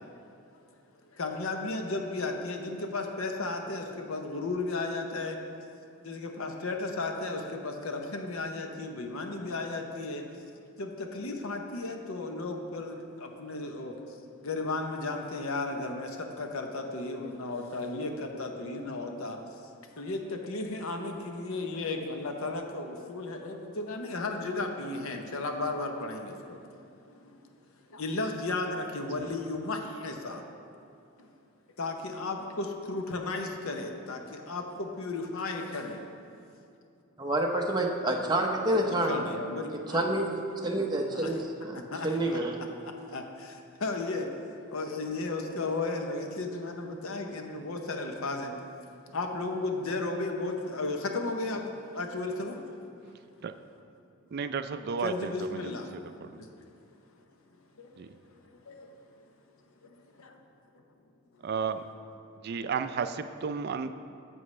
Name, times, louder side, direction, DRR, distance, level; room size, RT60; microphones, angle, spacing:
voice 1, 1.2-5.4 6.0-10.2 10.8-13.0 13.2-13.9 14.4-16.1 16.4-19.4 20.0-26.6 27.9-30.4 31.8-34.2 34.5-36.0 38.7-40.0 41.1-41.3 41.9-42.4 43.1-43.5 43.8-44.3 44.7-48.5 49.1-52.6 55.0-55.9 57.8-57.9 58.7-58.8, left 3 dB, 70° left, 4 dB, 0.8 m, -34 dB
voice 2, 37.2-39.1 39.9-42.5, right 1 dB, 20° right, 0 dB, 0.7 m, -28 dB
voice 3, 54.3-55.7 56.2-56.3 58.0-58.1 61.4-61.8 62.4-63.9, right 5 dB, 50° right, 10 dB, 0.3 m, -32 dB
11.0 x 7.7 x 3.2 m, 2.5 s
head